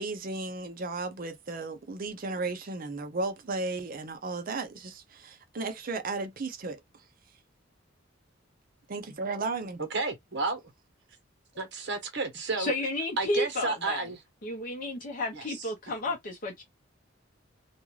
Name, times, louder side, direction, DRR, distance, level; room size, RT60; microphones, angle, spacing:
voice 1, 0.0-6.8 8.9-9.8, right 3 dB, 45° right, 0.6 m, -34 dB
voice 2, 9.9-10.6 11.6-12.7 13.2-14.2 15.3-15.7, right 3 dB, 60° right, 1.0 m, -32 dB
voice 3, 12.6-14.0 14.4-16.6, left 2 dB, 45° left, 0.7 m, -32 dB
2.5 x 2.3 x 3.1 m
head